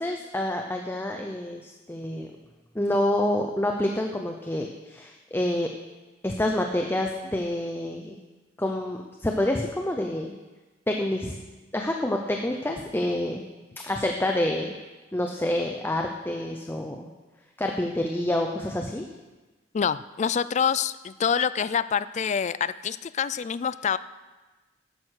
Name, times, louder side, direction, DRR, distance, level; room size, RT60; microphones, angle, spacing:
voice 1, 0.0-2.3 2.7-5.7 6.2-8.2 8.6-10.4 10.9-11.4 11.7-13.4 13.8-14.7 15.1-17.1 17.6-19.0, left 1 dB, 10° left, 3 dB, 0.7 m, -27 dB
voice 2, 19.7-24.0, left 7 dB, 40° left, 16 dB, 0.3 m, -26 dB
12.0 x 9.5 x 6.5 m, 1.2 s
head